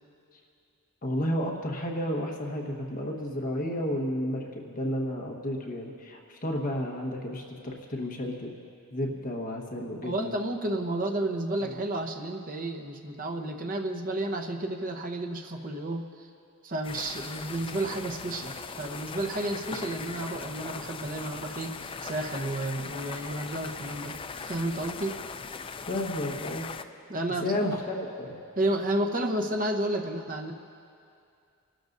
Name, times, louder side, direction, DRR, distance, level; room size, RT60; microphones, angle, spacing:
voice 1, 1.0-8.5 8.9-10.4 25.9-26.7 27.4-28.4, left 1 dB, 40° left, 0 dB, 1.3 m, -32 dB
voice 2, 10.0-16.0 16.6-25.2 27.1-27.5 28.6-30.5, right 1 dB, 40° right, 4 dB, 1.0 m, -31 dB
sound 1, 16.8-26.8, left 5 dB, 25° left, 0.4 m, -39 dB
28.5 x 12.5 x 2.6 m, 2.4 s
head